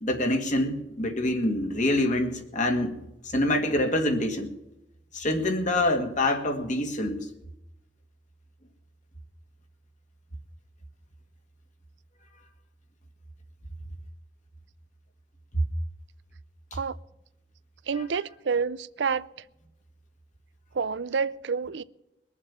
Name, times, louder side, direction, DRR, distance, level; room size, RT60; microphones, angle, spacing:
voice 1, 0.0-3.0 3.3-4.5 5.1-7.2 15.5-15.6, left 1 dB, 45° left, 2.1 m, -25 dB
voice 2, 17.9-19.3 20.7-21.8, right 5 dB, 70° right, 0.5 m, -28 dB
22.0 x 7.3 x 7.2 m
head